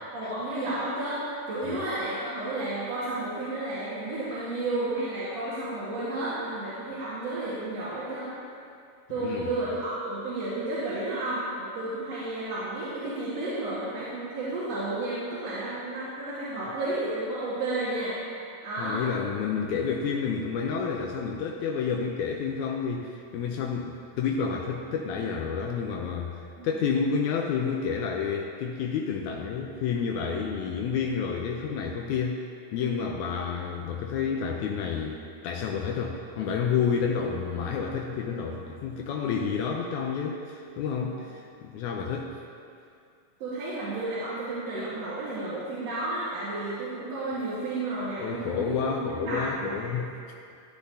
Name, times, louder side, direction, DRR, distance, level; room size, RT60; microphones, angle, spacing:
voice 1, 0.1-8.3 9.1-18.2 18.6-19.0 26.6-26.7 43.4-49.9, right 2 dB, 55° right, -11 dB, 2.5 m, -32 dB
voice 2, 9.2-9.5 18.8-32.4 32.7-42.3 48.2-50.1, left 6 dB, 90° left, 1 dB, 1.7 m, -30 dB
13.5 x 10.0 x 2.8 m, 2.4 s
omnidirectional pair, 4.1 m